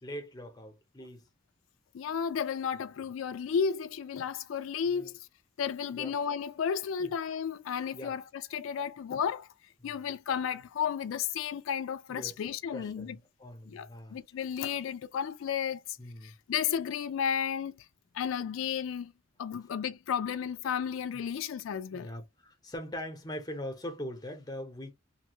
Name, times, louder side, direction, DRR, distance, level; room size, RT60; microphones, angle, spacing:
voice 1, 0.0-1.2 4.9-5.2 5.9-6.2 7.0-7.1 7.9-8.2 9.8-10.1 12.1-14.2 16.0-16.3 21.1-21.2 21.9-24.9, equal, 20° left, 0.8 m, -42 dB
voice 2, 1.9-5.2 5.6-9.5 9.8-13.2 13.7-16.0 16.2-17.7 18.1-19.1 19.4-22.1, left 7 dB, 80° left, 0.3 m, -33 dB
2.7 x 2.3 x 2.9 m
head